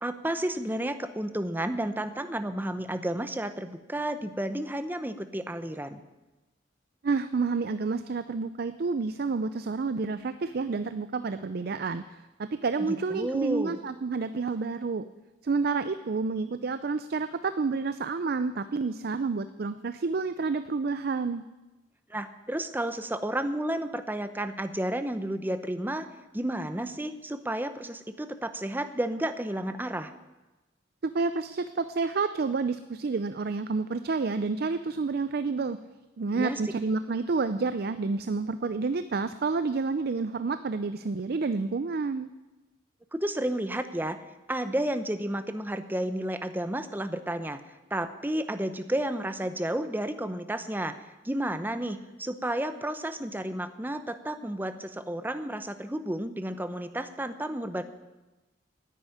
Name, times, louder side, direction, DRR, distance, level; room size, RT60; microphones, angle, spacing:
voice 1, 0.0-6.0 12.8-13.8 22.1-26.1 26.3-30.1 36.3-36.6 43.1-44.2 44.5-47.6 47.9-51.0 51.2-57.8, right 1 dB, 10° right, 10 dB, 0.7 m, -31 dB
voice 2, 7.0-15.0 15.4-21.4 31.0-35.8 36.2-42.3, right 4 dB, 55° right, 12 dB, 0.5 m, -29 dB
9.9 x 9.3 x 10.0 m, 1.1 s
head